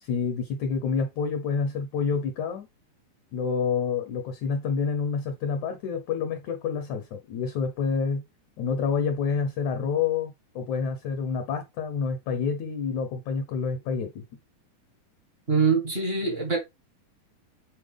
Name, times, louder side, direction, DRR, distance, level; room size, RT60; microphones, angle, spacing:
voice 1, 0.0-2.7 3.3-8.2 8.6-14.2, left 5 dB, 70° left, 1.9 m, -28 dB
voice 2, 15.5-16.6, right 5 dB, 35° right, 0.9 m, -24 dB
8.3 x 4.3 x 3.5 m
omnidirectional pair, 4.4 m